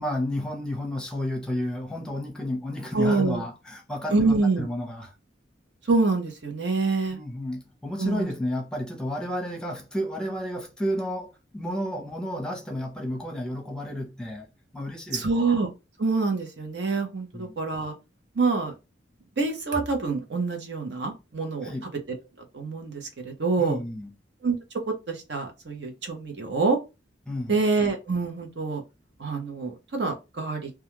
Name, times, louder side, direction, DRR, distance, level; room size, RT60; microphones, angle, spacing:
voice 1, 0.0-5.1 7.1-14.5 14.7-15.2 17.3-17.5 21.6-21.9 23.6-24.1 27.3-27.6, left 1 dB, 5° left, 0.7 m, -31 dB
voice 2, 2.9-3.4 4.1-4.7 5.9-7.2 8.0-8.3 15.1-15.7 16.0-17.9 18.4-18.7 19.4-21.7 22.1-22.2 22.5-23.8 24.4-24.6 25.1-26.8 27.5-28.8 29.2-30.7, right 3 dB, 70° right, 0.8 m, -26 dB
2.3 x 2.3 x 3.0 m
head